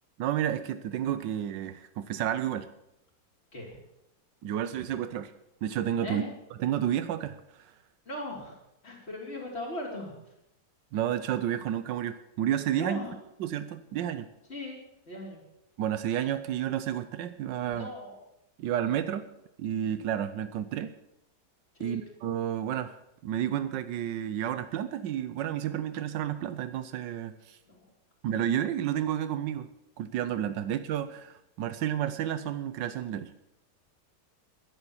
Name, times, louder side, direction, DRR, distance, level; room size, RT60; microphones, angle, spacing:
voice 1, 0.2-2.7 4.4-5.3 5.6-6.2 6.6-7.7 10.9-13.1 13.4-14.3 15.8-17.9 18.6-19.2 19.6-20.9 21.8-23.0 23.2-27.6 28.2-29.7 30.0-33.3, right 10 dB, 90° right, 12 dB, 1.4 m, -31 dB
voice 2, 8.1-8.6 8.8-10.1 12.8-13.1 14.5-14.8 15.1-15.4 17.7-18.2 21.7-22.0 27.7-27.9, left 1 dB, 35° left, -2 dB, 3.7 m, -38 dB
11.5 x 10.0 x 7.1 m, 0.84 s
omnidirectional pair, 1.9 m